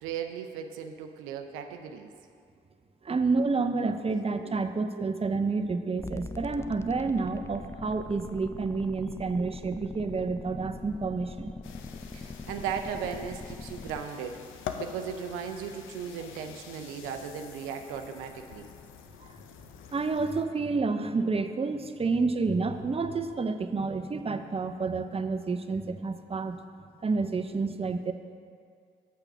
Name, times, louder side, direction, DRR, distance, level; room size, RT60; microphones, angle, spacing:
voice 1, 0.0-2.1 4.0-4.2 4.4-4.6 5.0-5.4 9.1-9.2 12.1-18.7, right 7 dB, 85° right, 5 dB, 0.5 m, -37 dB
voice 2, 3.0-11.5 19.9-26.6 27.0-28.1, right 4 dB, 30° right, 8 dB, 0.7 m, -29 dB
sound 1, 6.0-14.0, left 3 dB, 15° left, 0.4 m, -42 dB
sound 2, 11.6-20.5, left 7 dB, 80° left, 0.6 m, -45 dB
7.1 x 6.7 x 6.0 m, 2.3 s
hypercardioid pair, 40°, 20 cm